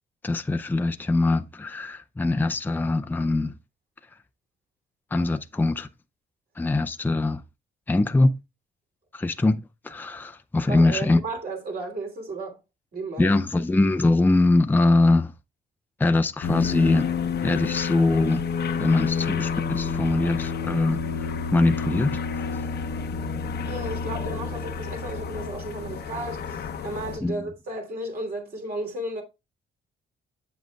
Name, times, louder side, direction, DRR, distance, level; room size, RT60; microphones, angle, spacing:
voice 1, 0.2-3.5 5.1-5.9 6.6-7.4 7.9-8.3 9.1-11.2 13.2-15.3 16.0-17.1 17.4-18.4 18.8-22.2 27.2-27.5, left 2 dB, 10° left, 0.5 m, -22 dB
voice 2, 10.7-12.6 12.9-13.4 23.6-29.2, right 2 dB, 50° right, 3.0 m, -34 dB
sound 1, 16.4-27.2, left 6 dB, 55° left, 0.8 m, -29 dB
7.7 x 7.4 x 2.3 m
cardioid pair, 90°, 20 cm